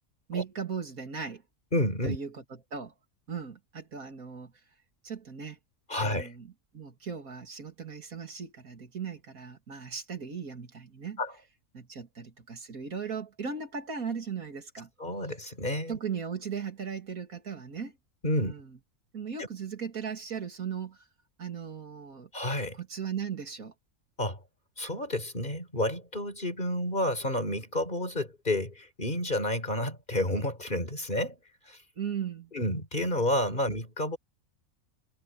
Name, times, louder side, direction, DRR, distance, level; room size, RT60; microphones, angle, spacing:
voice 1, 0.3-1.4 2.0-2.9 3.3-4.5 5.0-5.6 6.0-11.2 11.7-14.9 15.9-18.0 18.4-18.8 19.1-21.0 21.4-22.3 22.7-23.7 32.0-32.5, right 6 dB, 90° right, 3.0 m, -37 dB
voice 2, 1.7-2.2 5.9-6.3 11.2-11.3 15.0-16.0 18.2-18.5 19.4-19.5 22.3-22.8 24.2-24.4 24.8-31.4 31.7-31.8 32.5-34.2, left 1 dB, 35° left, 4.4 m, -30 dB
omnidirectional pair, 1.4 m